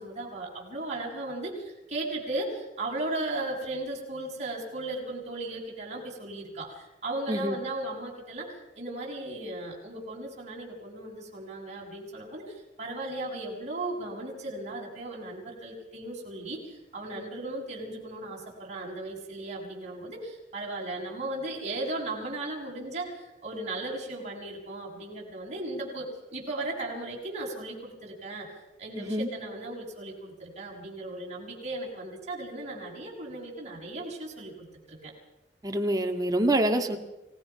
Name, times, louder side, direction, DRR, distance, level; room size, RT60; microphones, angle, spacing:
voice 1, 0.0-28.5 28.8-35.1, right 2 dB, 40° right, -3 dB, 7.1 m, -36 dB
voice 2, 29.0-29.3 35.6-37.0, right 1 dB, 20° right, 4 dB, 1.9 m, -26 dB
29.0 x 18.5 x 5.9 m, 1.0 s
head